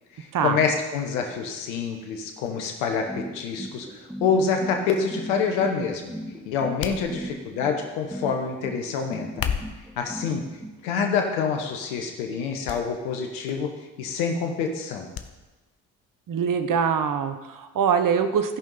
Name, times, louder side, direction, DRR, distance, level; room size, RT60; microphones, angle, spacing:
voice 1, 0.1-3.9 4.2-6.1 6.5-9.4 10.0-10.4 10.8-13.7 14.0-15.1, left 5 dB, 90° left, 3 dB, 1.0 m, -26 dB
sound 1, 3.1-10.7, equal, 5° right, 2.8 m, -36 dB
sound 2, 6.8-7.6 9.2-10.0 10.7-11.1 11.5-11.7 12.7-12.8 13.1-13.2 15.1-15.3 15.7-15.8, left 8 dB, 55° left, 0.9 m, -32 dB
voice 2, 16.3-18.6, right 7 dB, 50° right, 9 dB, 1.1 m, -23 dB
14.0 x 5.4 x 5.5 m, 1.2 s
hypercardioid pair, 50°, 42 cm